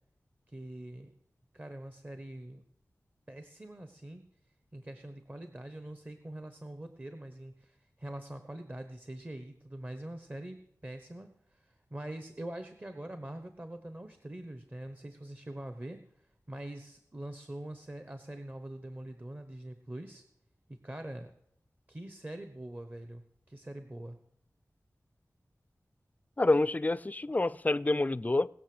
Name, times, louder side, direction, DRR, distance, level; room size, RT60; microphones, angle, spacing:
voice 1, 0.5-1.1 1.5-2.6 3.3-4.3 4.7-16.0 16.5-20.2 20.8-21.3 21.9-24.2, right 1 dB, 30° right, 1.1 m, -44 dB
voice 2, 26.4-28.5, left 2 dB, 25° left, 0.4 m, -27 dB
19.5 x 6.7 x 7.8 m
wide cardioid pair, 70°, 6 cm